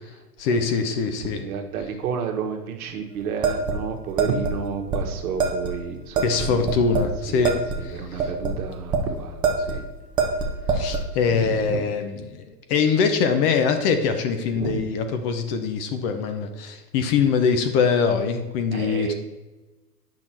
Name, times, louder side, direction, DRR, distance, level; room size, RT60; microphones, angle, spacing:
voice 1, 0.4-1.4 6.2-7.5 7.8-8.3 10.7-19.1, left 5 dB, 35° left, 7 dB, 0.8 m, -23 dB
voice 2, 1.3-6.7 7.2-9.8 11.3-11.8 14.5-14.8 18.7-19.1, right 6 dB, 60° right, 4 dB, 1.5 m, -31 dB
sound 1, 3.4-4.6 4.9-5.0 5.4-5.7 6.1-7.1 7.4-9.0 9.4-9.8 10.2-11.1, right 4 dB, 10° right, 0.4 m, -24 dB
8.7 x 5.9 x 4.4 m, 1.1 s
hypercardioid pair, 135°, 48 cm